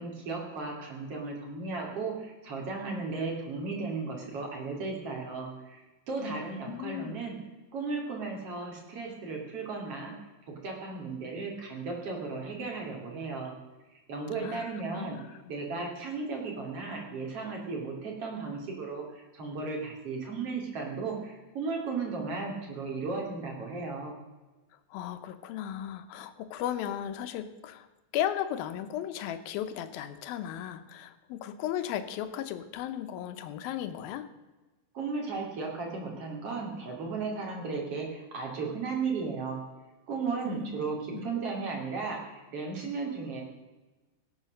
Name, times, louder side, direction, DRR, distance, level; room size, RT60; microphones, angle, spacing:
voice 1, 0.0-5.8 6.1-7.4 7.7-10.1 10.5-13.5 14.1-15.2 15.5-24.2 34.9-39.6 40.1-43.4, right 4 dB, 45° right, 0 dB, 3.3 m, -35 dB
voice 2, 6.2-7.2 14.4-14.6 14.9-15.2 24.9-27.9 28.1-34.3 40.5-40.8 41.1-41.3, left 10 dB, 80° left, 10 dB, 2.6 m, -35 dB
17.0 x 7.5 x 6.5 m, 1.2 s
omnidirectional pair, 4.2 m